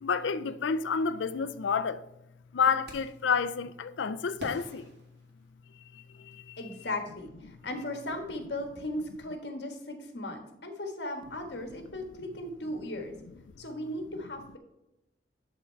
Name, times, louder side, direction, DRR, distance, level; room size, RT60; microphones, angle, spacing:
voice 1, 0.0-2.0 2.5-4.9 5.9-6.6 7.5-7.6, left 6 dB, 90° left, 0.5 m, -30 dB
sound 1, 2.9-3.3 4.4-5.9, right 1 dB, 65° right, 1.7 m, -46 dB
voice 2, 6.6-13.2 13.6-14.6, left 1 dB, 70° left, 1.5 m, -37 dB
11.0 x 3.7 x 4.5 m
head